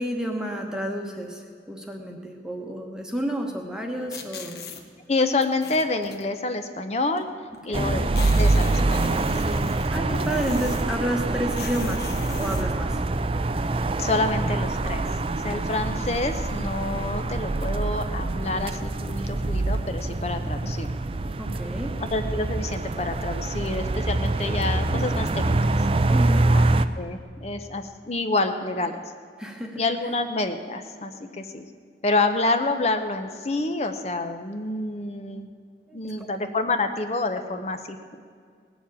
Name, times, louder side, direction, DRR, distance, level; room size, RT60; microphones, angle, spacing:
voice 1, 0.0-4.6 7.7-8.0 9.6-13.0 21.4-22.0 26.1-26.5 29.4-30.1 35.9-36.3, equal, 5° right, 1 dB, 1.1 m, -31 dB
sound 1, 4.1-4.8 5.4-6.2 7.2-7.3 7.5-7.6 7.8-11.0 11.5-12.7, left 3 dB, 60° left, 1.2 m, -38 dB
voice 2, 5.1-7.3 7.6-9.2 14.0-15.1 15.3-21.0 22.1-25.8 26.5-26.7 27.0-29.0 29.7-31.7 32.0-35.5 35.9-38.2, left 2 dB, 35° left, 7 dB, 0.7 m, -28 dB
sound 2, 7.7-26.9, right 2 dB, 30° right, 0.4 m, -25 dB
18.5 x 7.1 x 8.6 m, 2.1 s
head